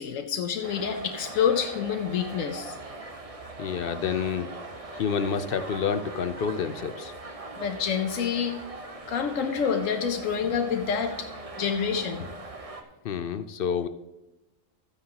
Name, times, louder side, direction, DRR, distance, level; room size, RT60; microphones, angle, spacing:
voice 1, 0.0-2.8 7.6-8.6 9.1-11.3 11.6-12.3, left 7 dB, 85° left, 5 dB, 1.1 m, -27 dB
sound 1, 0.6-12.8, right 2 dB, 30° right, 0.9 m, -41 dB
voice 2, 3.6-4.5 4.9-7.1 13.0-13.9, left 7 dB, 60° left, 11 dB, 0.6 m, -28 dB
13.5 x 9.4 x 2.9 m, 0.99 s
omnidirectional pair, 1.3 m